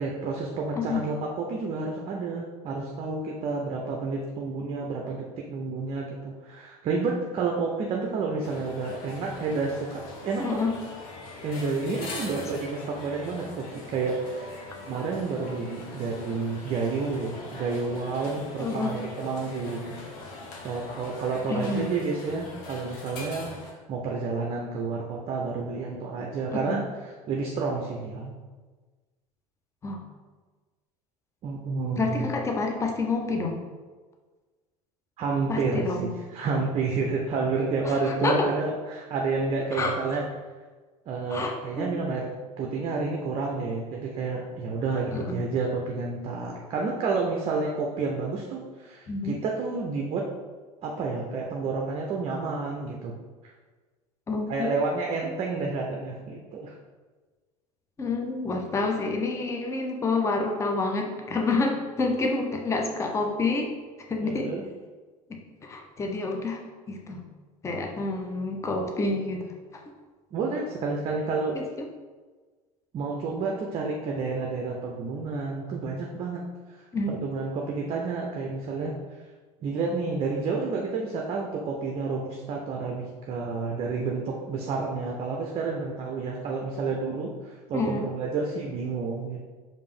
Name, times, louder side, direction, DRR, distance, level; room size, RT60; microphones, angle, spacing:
voice 1, 0.0-10.6 11.4-14.6 14.8-19.9 20.6-23.6 23.9-28.3 31.4-32.3 35.2-40.2 41.1-42.3 42.6-50.2 50.8-53.1 54.5-56.7 64.2-64.6 70.3-71.6 72.9-76.4 76.7-78.9 79.6-89.4, right 4 dB, 30° right, 0 dB, 0.5 m, -30 dB
sound 1, 8.4-23.7, left 3 dB, 50° left, 0.9 m, -42 dB
voice 2, 10.4-10.7 18.6-18.9 21.5-22.0 26.5-26.8 29.8-30.0 32.0-33.6 35.5-36.1 37.8-38.5 39.7-39.9 41.3-42.0 45.1-45.4 49.1-49.4 54.3-54.7 58.0-63.7 64.1-64.5 65.3-66.6 66.9-67.2 67.6-69.5 71.5-71.6 76.9-77.2 87.7-88.1, left 3 dB, 15° left, 2 dB, 0.6 m, -28 dB
5.0 x 2.6 x 3.5 m, 1.4 s
figure-of-eight pair, 75°, 19 cm